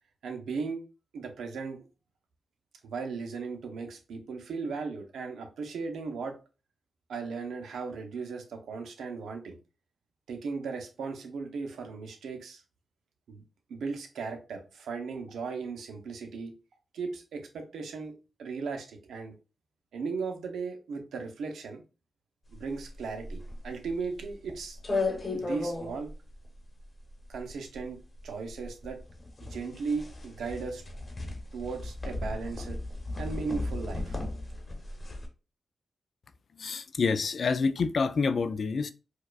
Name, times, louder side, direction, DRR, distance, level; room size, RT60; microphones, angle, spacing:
voice 1, 0.2-0.8 1.1-1.8 2.8-6.4 7.1-9.6 10.3-12.6 13.3-13.4 13.7-16.5 16.9-18.1 18.4-19.3 19.9-21.8 22.5-24.8 25.3-26.1 27.3-28.0 28.2-29.0 29.4-30.8 31.5-32.8 33.2-34.2, right 4 dB, 90° right, 0.7 m, -36 dB
sound 1, 22.5-35.3, left 2 dB, 40° left, 1.0 m, -36 dB
voice 2, 36.6-38.9, left 4 dB, 60° left, 0.3 m, -27 dB
4.5 x 2.3 x 2.3 m
cardioid pair, 75°, 0 cm